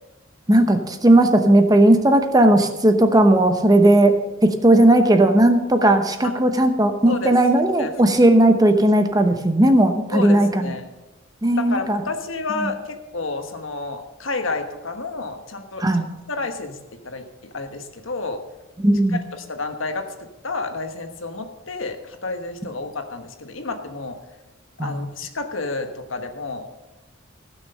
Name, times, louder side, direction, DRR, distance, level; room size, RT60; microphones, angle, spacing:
voice 1, 0.5-10.7 11.4-12.0 12.6-12.7 15.8-16.0 18.8-19.2 24.8-25.0, right 1 dB, 20° right, 7 dB, 0.9 m, -16 dB
voice 2, 10.1-10.9 11.6-15.9 16.3-16.8 17.0-17.2 17.5-18.4 19.1-20.0 20.4-24.2 24.8-26.7, left 3 dB, 70° left, 6 dB, 1.3 m, -30 dB
15.5 x 6.4 x 6.7 m, 1.1 s
head